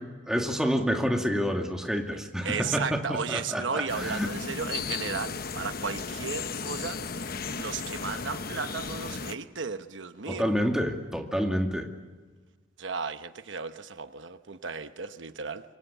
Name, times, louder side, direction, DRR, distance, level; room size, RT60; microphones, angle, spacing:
voice 1, 0.3-4.3 10.3-11.9, equal, 5° right, 2.4 m, -28 dB
voice 2, 2.4-10.6 12.8-15.6, right 5 dB, 75° right, 1.0 m, -35 dB
sound 1, 3.9-9.3, left 5 dB, 50° left, 1.0 m, -35 dB
27.0 x 24.5 x 7.3 m
head